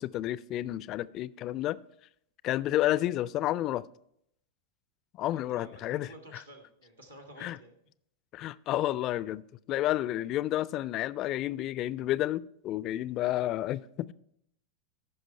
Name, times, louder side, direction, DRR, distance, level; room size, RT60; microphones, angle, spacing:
voice 1, 0.0-1.8 2.4-3.8 5.2-6.1 7.4-7.6 8.3-9.4 9.7-14.1, left 14 dB, 35° left, 0.3 m, -30 dB
voice 2, 5.3-7.7, equal, 85° right, 1.8 m, -51 dB
14.5 x 6.0 x 4.5 m
figure-of-eight pair, 90°, 0 cm